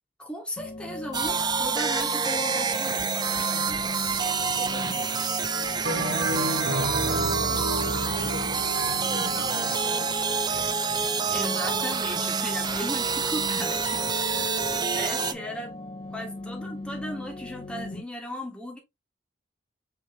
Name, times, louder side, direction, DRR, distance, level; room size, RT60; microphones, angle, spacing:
voice 1, 0.2-3.9 9.3-10.1 11.3-15.7 16.1-18.8, equal, 5° left, 1.3 m, -37 dB
sound 1, 0.6-18.0, left 2 dB, 30° left, 0.5 m, -38 dB
sound 2, 1.1-15.3, right 5 dB, 25° right, 0.5 m, -27 dB
voice 2, 4.2-6.8 7.3-11.0, left 2 dB, 55° left, 1.5 m, -45 dB
Bell, 5.8-10.4, right 1 dB, 60° right, 1.0 m, -31 dB
5.7 x 3.0 x 2.8 m
head